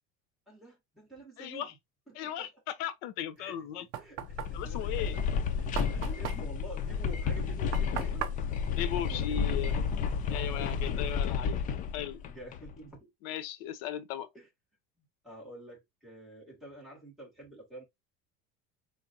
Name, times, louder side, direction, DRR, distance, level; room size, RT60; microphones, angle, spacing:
voice 1, 0.5-1.7 2.1-2.5 3.4-8.3 9.1-9.7 10.3-11.4 12.3-13.3 14.3-14.5 15.0-17.8, right 1 dB, ahead, 2.4 m, -49 dB
voice 2, 1.4-1.7 2.1-3.9 4.5-5.2 8.7-9.8 10.3-11.6 11.9-12.2 13.2-14.3, left 11 dB, 60° left, 0.8 m, -37 dB
Knock, 3.4-9.9, right 11 dB, 45° right, 0.7 m, -41 dB
sound 1, 4.2-12.7, left 6 dB, 25° left, 0.4 m, -31 dB
4.7 x 3.2 x 2.6 m
cardioid pair, 165°, 30 cm